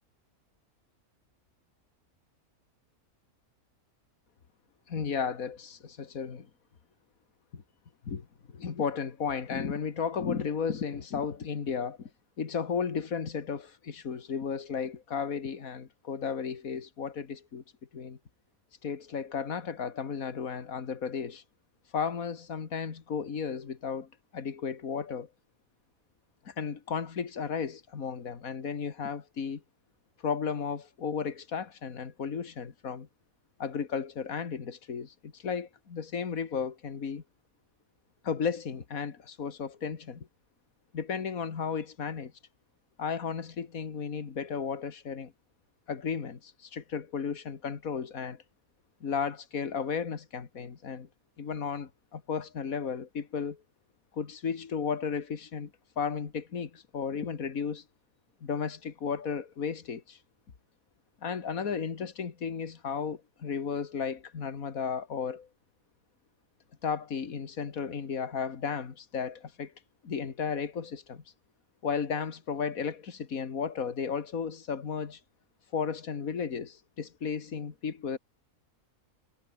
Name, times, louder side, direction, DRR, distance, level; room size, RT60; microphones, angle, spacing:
voice 1, 4.9-6.5 7.5-7.6 8.1-12.1 12.4-17.6 17.9-18.2 18.8-21.4 21.9-25.3 26.5-29.6 30.2-33.1 33.6-37.2 38.2-40.3 40.9-42.3 43.0-45.3 45.9-48.4 49.0-51.1 51.4-53.6 54.1-55.7 56.0-57.8 58.4-60.2 61.2-65.5 66.8-69.7 70.0-71.2 71.8-75.2 75.7-78.2, left 6 dB, 75° left, 2.3 m, -34 dB
omnidirectional pair, 1.5 m